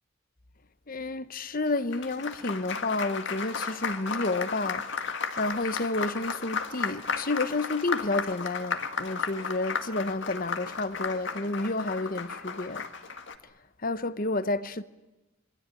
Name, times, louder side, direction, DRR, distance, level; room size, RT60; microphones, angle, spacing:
voice 1, 0.9-12.8 13.8-14.8, left 2 dB, 40° left, 1.1 m, -30 dB
Applause, 1.7-13.4, left 5 dB, 55° left, 2.0 m, -34 dB
27.0 x 24.0 x 9.1 m
head